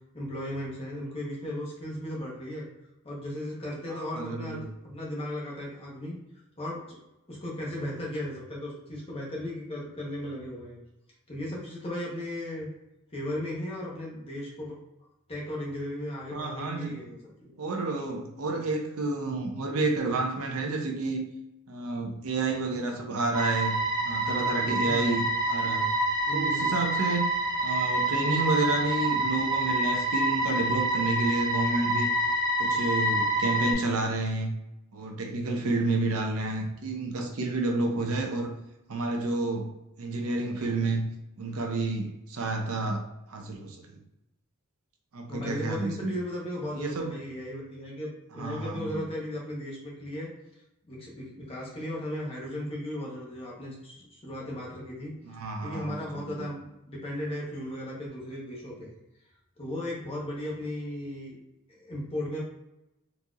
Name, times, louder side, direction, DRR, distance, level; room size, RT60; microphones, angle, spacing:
voice 1, 0.1-2.7 3.0-6.2 6.6-7.0 7.3-10.8 11.3-12.7 13.1-14.8 15.3-17.6 22.5-22.7 24.8-25.2 26.3-26.8 45.3-50.3 50.8-55.1 55.6-58.9 59.6-61.4 61.7-62.4, left 1 dB, 25° left, -4 dB, 1.0 m, -36 dB
voice 2, 3.9-4.7 16.3-17.0 17.6-21.3 21.7-25.9 26.3-27.2 27.6-32.1 32.6-34.5 34.9-38.5 38.9-39.7 40.0-41.1 41.4-44.0 45.1-46.2 46.7-47.2 48.4-49.0 55.2-56.5, right 2 dB, 70° right, 2 dB, 0.6 m, -30 dB
sound 1, 23.3-33.7, right 1 dB, 15° right, 1.1 m, -27 dB
4.0 x 2.8 x 2.4 m, 0.89 s
head